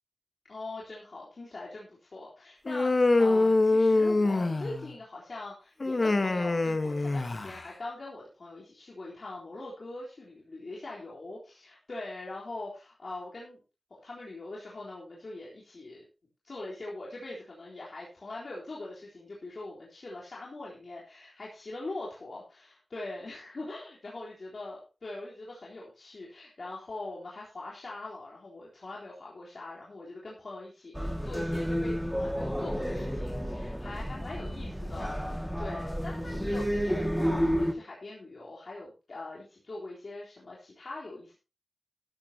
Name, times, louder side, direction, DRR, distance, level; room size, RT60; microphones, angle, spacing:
voice 1, 0.5-13.6 13.9-16.0 16.4-41.4, left 2 dB, 65° left, -5 dB, 3.8 m, -42 dB
Human voice, 2.7-4.9 5.8-7.7, left 2 dB, 45° left, 1.3 m, -25 dB
sound 1, 30.9-37.7, equal, ahead, 2.1 m, -31 dB
13.0 x 13.0 x 2.9 m, 0.31 s
wide cardioid pair, 75°, 0 cm